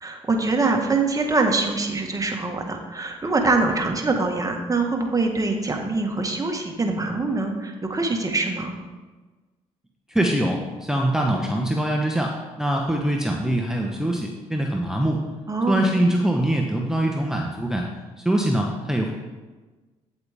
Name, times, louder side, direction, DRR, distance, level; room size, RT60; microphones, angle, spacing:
voice 1, 0.0-8.7 15.5-15.9, right 3 dB, 25° right, 2 dB, 1.7 m, -24 dB
voice 2, 10.1-15.2 15.7-17.9 18.2-19.1, right 1 dB, 5° right, 0 dB, 1.1 m, -23 dB
8.8 x 8.0 x 3.6 m, 1.3 s
hypercardioid pair, 55°, 14 cm